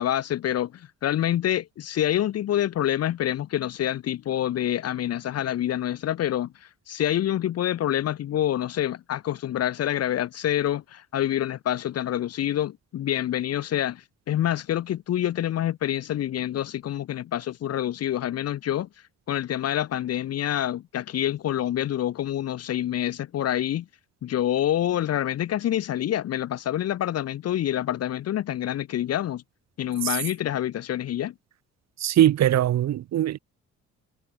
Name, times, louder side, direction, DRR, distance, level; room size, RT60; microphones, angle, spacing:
voice 1, 0.0-18.9 19.3-23.9 24.2-29.4 29.8-31.3, left 11 dB, 55° left, 0.7 m, -27 dB
voice 2, 32.0-33.4, right 12 dB, 65° right, 0.9 m, -21 dB
cardioid pair, 90°, 30 cm